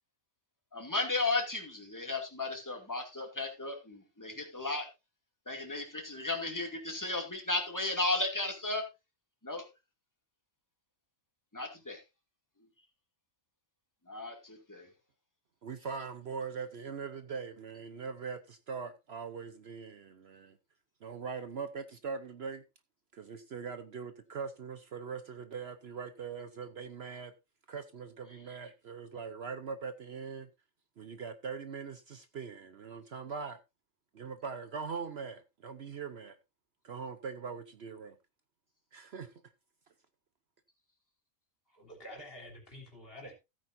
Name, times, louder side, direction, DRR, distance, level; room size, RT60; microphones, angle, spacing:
voice 1, 0.7-4.9 5.5-8.8 9.4-9.7 11.5-12.0 14.1-14.9, left 2 dB, 15° left, 2.4 m, -34 dB
voice 2, 15.6-20.6 21.0-22.6 23.1-27.3 27.7-30.5 31.0-33.6 34.1-36.4 36.8-38.2 38.9-39.3, right 5 dB, 55° right, 1.0 m, -41 dB
voice 3, 41.7-43.3, left 1 dB, 45° left, 3.7 m, -48 dB
15.0 x 9.0 x 2.6 m
omnidirectional pair, 1.4 m